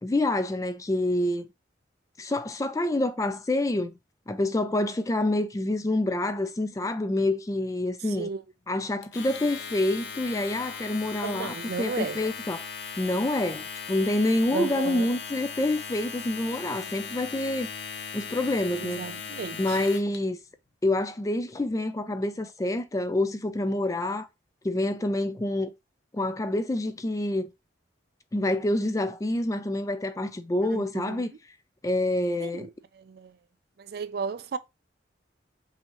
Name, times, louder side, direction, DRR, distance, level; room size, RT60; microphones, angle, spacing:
voice 1, 0.0-1.5 2.2-3.9 4.3-8.3 8.7-12.6 13.0-17.7 18.1-19.0 19.6-20.4 20.8-24.3 24.6-25.7 26.1-27.5 28.3-31.3 31.8-32.7, left 1 dB, 20° left, 0.3 m, -27 dB
Domestic sounds home sounds, 9.0-20.2, left 6 dB, 65° left, 0.6 m, -38 dB
voice 2, 11.2-12.2 14.5-15.1 18.8-19.9 30.7-31.2 32.4-32.7 33.0-33.3 33.8-34.6, right 5 dB, 55° right, 0.4 m, -34 dB
5.5 x 2.7 x 3.0 m
head